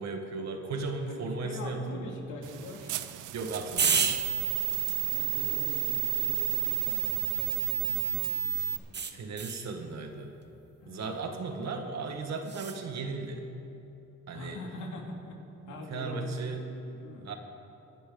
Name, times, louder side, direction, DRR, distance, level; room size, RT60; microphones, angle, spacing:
voice 1, 0.0-2.1 3.3-4.2 9.1-10.3 10.9-13.5 14.3-14.6 15.6-16.6 17.2-17.3, right 3 dB, 60° right, 4 dB, 1.8 m, -36 dB
voice 2, 1.1-2.9 5.1-9.3 10.8-11.3 14.3-15.4 15.7-17.3, left 2 dB, 85° left, 0 dB, 2.5 m, -44 dB
sound 1, 2.4-8.8, right 16 dB, 90° right, 0.7 m, -31 dB
sound 2, 3.8-8.2 8.9-9.7 12.4-12.8, right 6 dB, 35° right, 1.0 m, -34 dB
23.5 x 11.0 x 4.0 m, 2.9 s
cardioid pair, 90°, 30 cm